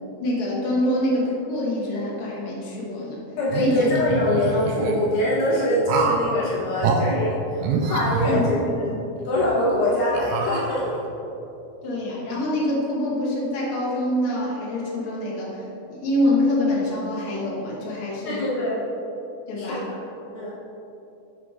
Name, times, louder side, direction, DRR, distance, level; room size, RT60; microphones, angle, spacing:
voice 1, 0.2-3.2 3.5-3.9 8.2-8.4 8.9-9.2 11.8-15.6 15.9-18.5 19.5-19.9, left 1 dB, 65° left, -5 dB, 1.3 m, -25 dB
voice 2, 3.4-8.9 9.2-11.0 18.2-18.8 19.6-19.8 20.3-20.5, left 1 dB, 85° left, -7 dB, 1.2 m, -23 dB
sound 1, 3.5-4.9 5.9-6.3 6.8-7.0 7.6-8.9 9.3-9.5 10.1-11.1, right 4 dB, 80° right, 1.9 m, -26 dB
6.6 x 3.9 x 4.8 m, 2.8 s
omnidirectional pair, 4.2 m